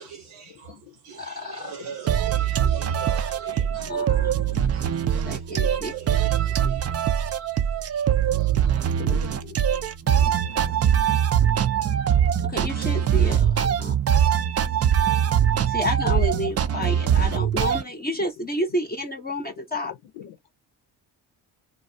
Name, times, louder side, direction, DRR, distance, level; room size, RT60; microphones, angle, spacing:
voice 1, 0.0-8.9, right 8 dB, 85° right, 1.1 m, -43 dB
voice 2, 0.7-1.0 3.6-4.1 4.3-4.5 6.6-6.9 9.0-9.6 10.1-10.8 13.6-13.8 19.8-20.4, left 11 dB, 70° left, 0.7 m, -44 dB
voice 3, 1.2-1.7 3.9-4.7 5.2-5.9 12.4-14.0 15.6-19.9, left 1 dB, 20° left, 0.7 m, -30 dB
sound 1, 2.1-17.8, right 9 dB, 35° right, 0.4 m, -22 dB
2.3 x 2.0 x 2.6 m
supercardioid pair, 60°, 47 cm